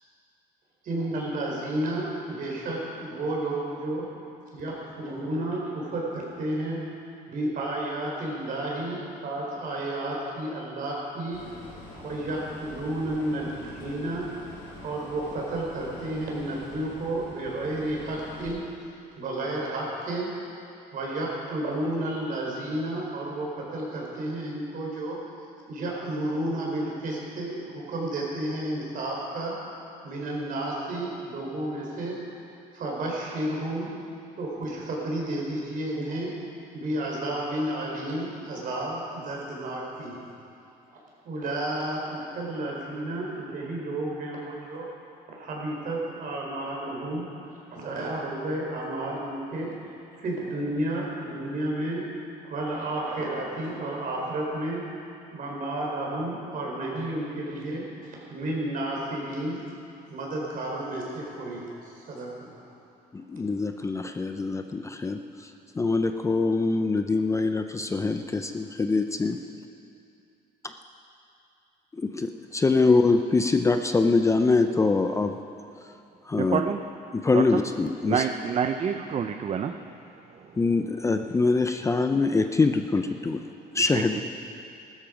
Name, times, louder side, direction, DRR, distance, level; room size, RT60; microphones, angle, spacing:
voice 1, 0.8-4.0 4.5-6.8 7.3-11.4 11.9-14.2 14.8-18.6 19.2-20.3 20.9-25.2 25.7-29.5 30.0-32.1 32.7-33.9 34.4-36.3 36.7-40.2 40.9-41.0 41.2-44.8 45.3-49.7 50.2-52.0 52.4-54.8 55.3-59.6 60.1-62.7, right 1 dB, 55° right, -2 dB, 4.4 m, -31 dB
sound 1, 11.3-18.5, left 2 dB, 80° left, 4.3 m, -45 dB
voice 2, 63.1-65.5 65.8-69.3 72.0-75.3 76.3-76.6 77.1-78.3 80.6-83.4 83.7-84.2, left 3 dB, 15° left, 7 dB, 0.5 m, -24 dB
voice 3, 76.4-76.8 77.3-77.4 78.1-79.7 83.9-84.2, right 7 dB, 40° right, 7 dB, 0.6 m, -27 dB
15.0 x 13.0 x 5.2 m, 2.6 s
cardioid pair, 110°, 17 cm